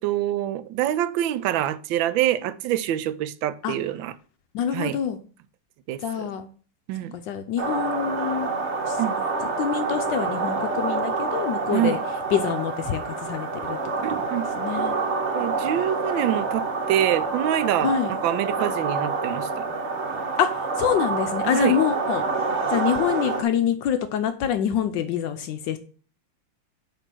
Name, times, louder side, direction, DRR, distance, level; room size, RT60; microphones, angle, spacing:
voice 1, 0.0-4.1 4.7-5.0 5.9-6.3 6.9-7.2 9.0-9.2 11.7-12.0 14.0-14.5 15.3-19.7 21.5-21.8, right 12 dB, 85° right, 1.3 m, -26 dB
voice 2, 4.5-5.2 6.0-6.5 7.1-8.5 8.9-9.0 9.4-12.0 12.3-13.8 14.2-14.3 14.6-15.0 17.8-18.1 20.4-22.2 22.7-25.8, left 9 dB, 75° left, 1.3 m, -26 dB
sound 1, 7.6-23.4, right 4 dB, 45° right, 1.1 m, -27 dB
8.9 x 3.0 x 6.1 m
omnidirectional pair, 2.1 m